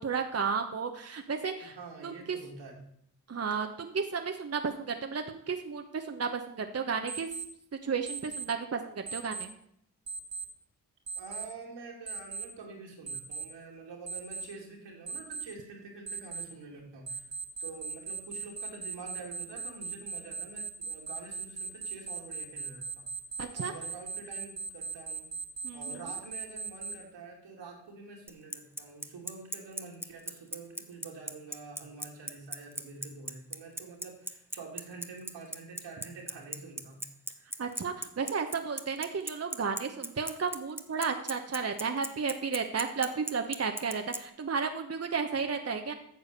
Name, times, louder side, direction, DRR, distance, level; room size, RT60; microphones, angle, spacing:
voice 1, 0.0-1.7 2.0-2.4 3.3-7.3 7.8-9.5 23.4-23.7 25.6-25.9 37.6-45.9, right 5 dB, 35° right, 5 dB, 1.1 m, -33 dB
voice 2, 1.6-2.8 11.1-17.3 17.6-23.1 23.5-25.3 25.7-37.0, right 4 dB, 70° right, 0 dB, 2.9 m, -47 dB
Alarm, 7.1-7.4 8.1-8.4 9.1-9.4 10.1-10.4 11.1-11.4 12.1-12.4 13.1-13.4 14.1-14.4 15.1-15.4 16.1-16.4 17.1-26.9, right 5 dB, 50° right, 2.0 m, -38 dB
Bicycle, 28.3-44.2, right 1 dB, 5° right, 1.1 m, -36 dB
9.3 x 6.7 x 6.8 m, 0.71 s
hypercardioid pair, 40°, 44 cm